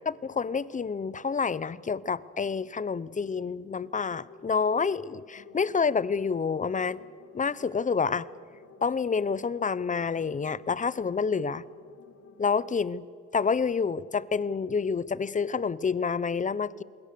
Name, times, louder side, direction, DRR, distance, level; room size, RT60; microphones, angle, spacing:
voice 1, 0.1-7.0 7.3-8.3 8.8-11.6 12.4-13.1 13.3-16.8, left 5 dB, 25° left, 19 dB, 0.7 m, -28 dB
sound 1, 3.4-12.8, left 6 dB, 65° left, 2.0 m, -54 dB
28.0 x 21.0 x 6.8 m, 2.3 s
cardioid pair, 90°, 30 cm